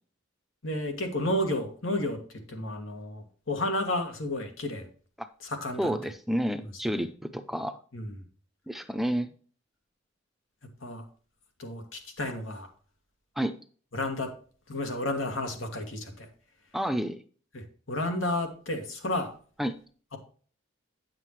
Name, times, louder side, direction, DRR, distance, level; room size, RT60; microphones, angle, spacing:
voice 1, 0.6-4.9 5.4-5.9 7.9-8.2 10.8-11.0 11.6-12.7 13.9-14.3 14.7-16.3 17.5-19.3, left 1 dB, 90° left, 5 dB, 2.3 m, -32 dB
voice 2, 5.8-7.8 8.7-9.3 13.4-13.6 16.7-17.2 19.6-19.8, equal, ahead, 10 dB, 0.5 m, -30 dB
9.2 x 7.6 x 3.2 m, 0.42 s
head